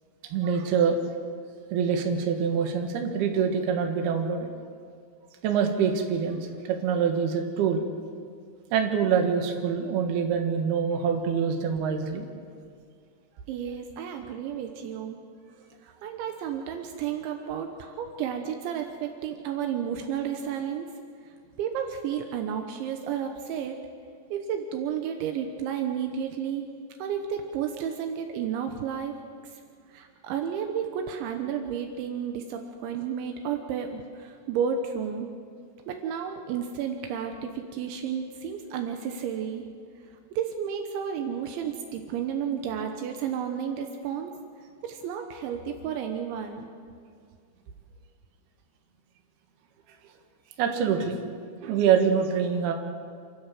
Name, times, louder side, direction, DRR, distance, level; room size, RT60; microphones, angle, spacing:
voice 1, 0.3-1.0 1.7-4.5 5.4-7.9 8.7-12.3 50.6-51.2 51.6-52.7, right 7 dB, 65° right, 4 dB, 3.4 m, -25 dB
voice 2, 13.5-15.2 15.8-20.9 21.6-23.8 24.3-26.7 27.0-29.1 29.9-35.3 35.9-39.7 40.3-44.3 44.8-46.7, right 8 dB, 80° right, 4 dB, 3.4 m, -32 dB
28.5 x 13.0 x 7.5 m, 2.2 s
omnidirectional pair, 5.3 m